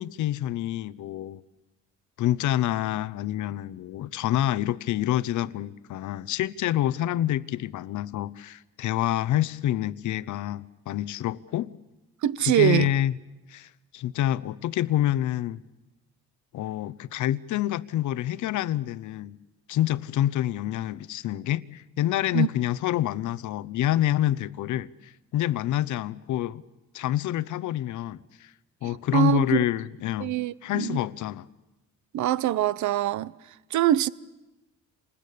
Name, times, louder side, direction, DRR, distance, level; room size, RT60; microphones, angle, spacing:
voice 1, 0.0-1.4 2.2-11.7 12.5-13.1 13.5-15.6 16.5-19.4 19.7-26.6 26.9-28.2 28.8-30.3 30.6-31.4, left 13 dB, 75° left, 0.8 m, -27 dB
voice 2, 12.2-12.9 22.3-22.5 28.8-29.6 30.2-31.0 32.1-33.3 33.7-34.1, right 12 dB, 70° right, 0.8 m, -24 dB
27.0 x 20.5 x 8.5 m
cardioid pair, 90°, 30 cm